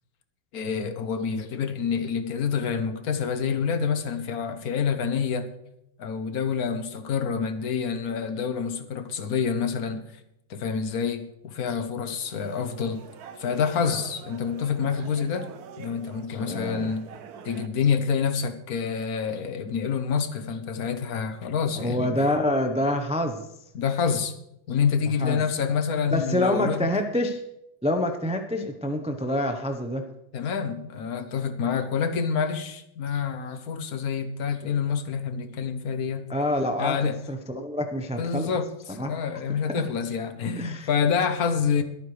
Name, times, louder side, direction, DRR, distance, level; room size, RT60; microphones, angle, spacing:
voice 1, 0.5-5.5 6.0-10.1 10.5-13.1 13.4-15.5 15.8-17.1 17.4-22.1 23.7-24.3 24.7-26.9 30.3-36.3 36.8-37.2 38.2-41.8, left 6 dB, 55° left, 1.4 m, -27 dB
sound 1, 12.2-17.7, right 7 dB, 60° right, 1.2 m, -45 dB
voice 2, 16.3-16.9 21.7-23.5 25.2-25.4 26.1-27.4 27.8-30.0 36.3-38.5 39.0-39.1 39.5-39.6 40.6-40.9, left 1 dB, 5° right, 0.4 m, -27 dB
22.5 x 8.9 x 3.3 m
omnidirectional pair, 2.1 m